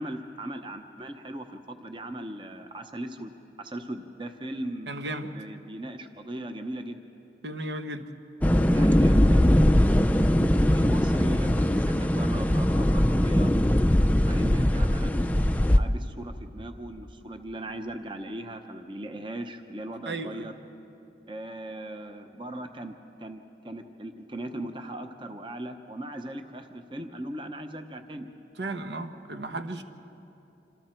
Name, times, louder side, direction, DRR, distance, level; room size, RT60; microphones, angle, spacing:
voice 1, 0.0-7.0 8.7-9.9 10.7-13.5 14.3-15.3 15.8-20.5 21.3-28.3, right 1 dB, 25° right, 6 dB, 0.9 m, -38 dB
voice 2, 4.9-5.3 7.4-8.1 20.1-20.5 28.6-29.8, right 2 dB, 80° right, 7 dB, 1.1 m, -34 dB
sound 1, 8.4-15.8, equal, 10° left, 0.4 m, -21 dB
27.0 x 26.5 x 4.5 m, 2.8 s
head